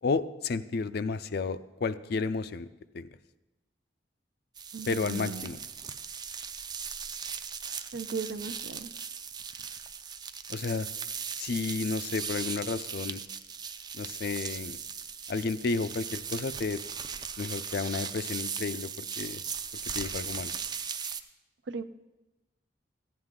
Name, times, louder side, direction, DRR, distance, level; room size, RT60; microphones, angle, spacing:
voice 1, 0.0-2.7 2.9-3.1 4.9-5.6 10.5-10.9 11.4-13.2 13.9-14.8 15.3-16.8 17.4-19.4 19.9-20.5, left 4 dB, 60° left, 13 dB, 0.4 m, -32 dB
sound 1, 4.6-21.2, right 6 dB, 25° right, 0.4 m, -38 dB
voice 2, 4.7-5.6 7.9-8.9 21.7-21.8, right 5 dB, 75° right, 11 dB, 0.5 m, -37 dB
15.0 x 9.6 x 3.7 m, 1.0 s
head